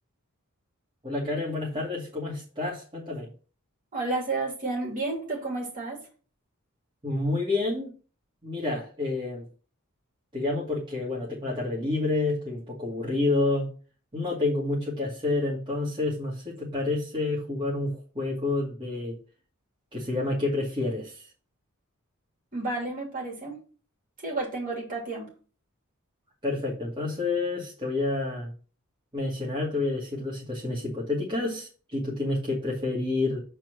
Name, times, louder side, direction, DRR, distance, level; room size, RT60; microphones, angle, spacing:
voice 1, 1.0-3.3 7.0-7.9 8.4-9.4 10.3-13.7 14.1-19.1 19.9-21.2 26.4-28.5 29.1-33.4, left 2 dB, 25° right, -6 dB, 2.3 m, -29 dB
voice 2, 3.9-6.0 22.5-23.6 24.2-25.3, right 3 dB, 40° right, -1 dB, 3.0 m, -31 dB
7.4 x 4.6 x 6.2 m, 0.38 s
head